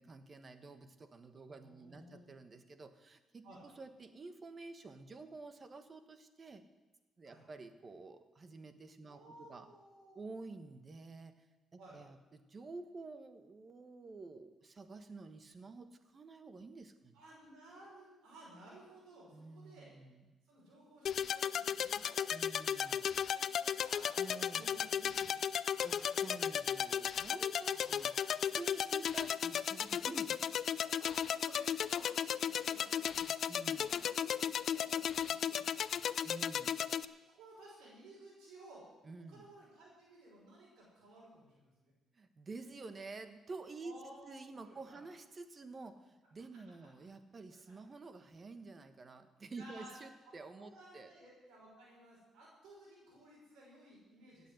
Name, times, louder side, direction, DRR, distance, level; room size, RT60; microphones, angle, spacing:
voice 1, 0.0-6.6 7.2-9.7 10.1-11.3 11.7-17.2 19.3-20.3 22.3-23.0 24.2-24.7 25.8-28.1 28.5-30.5 33.5-33.9 36.2-36.8 39.0-39.5 42.1-51.1, right 3 dB, 35° right, 10 dB, 1.4 m, -50 dB
voice 2, 1.5-2.3 3.4-3.6 7.2-7.4 9.1-10.4 11.8-12.0 17.1-19.9 20.4-24.1 24.5-25.4 25.7-26.5 27.6-28.5 30.8-34.4 34.7-36.1 37.3-38.9 39.3-41.9 43.8-45.0 47.5-47.8 49.6-49.9 50.2-54.5, right 1 dB, 90° right, -5 dB, 5.6 m, -57 dB
sound 1, 21.1-37.1, left 8 dB, 60° left, 0.5 m, -35 dB
15.5 x 8.7 x 7.9 m, 1.1 s
cardioid pair, 90°, 0 cm